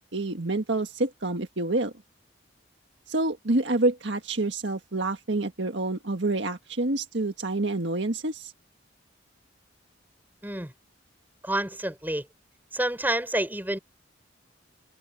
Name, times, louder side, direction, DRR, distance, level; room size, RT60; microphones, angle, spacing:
voice 1, 0.1-1.9 3.1-8.5, right 2 dB, 65° right, 1.7 m, -27 dB
voice 2, 10.4-10.7 11.4-12.3 12.7-13.8, right 1 dB, 10° right, 5.3 m, -28 dB
head